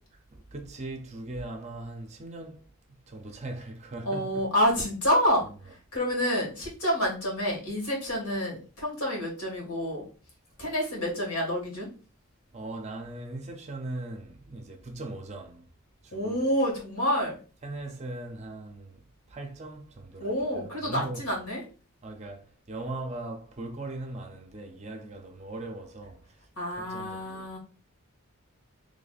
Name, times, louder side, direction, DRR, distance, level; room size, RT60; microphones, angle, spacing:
voice 1, 0.3-2.7 3.1-4.4 5.4-5.5 10.6-10.7 12.5-15.7 16.0-16.4 17.6-21.2 22.0-27.5, right 2 dB, 30° right, 0.5 m, -39 dB
voice 2, 4.1-10.0 10.6-11.9 16.1-17.4 20.2-21.6 26.6-27.6, equal, 85° left, 1.9 m, -28 dB
3.2 x 2.5 x 3.9 m
head